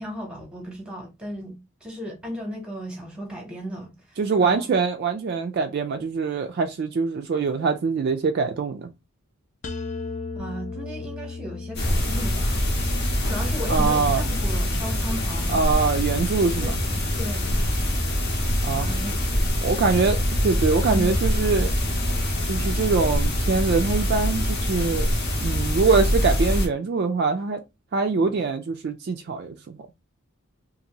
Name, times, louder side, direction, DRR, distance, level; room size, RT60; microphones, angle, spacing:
voice 1, 0.0-4.6 10.3-12.6 13.2-15.6 16.6-16.7 17.1-17.6 18.7-19.4 20.9-21.1, equal, 5° right, 0.8 m, -35 dB
voice 2, 4.2-8.9 13.7-14.2 15.5-16.8 18.6-18.9 19.6-21.7 22.5-25.1 25.4-27.6 27.9-29.8, right 4 dB, 45° right, 0.3 m, -23 dB
sound 1, 9.6-15.4, left 4 dB, 35° left, 0.3 m, -37 dB
sound 2, 11.8-26.7, equal, 50° left, 0.7 m, -24 dB
2.7 x 2.5 x 2.8 m
head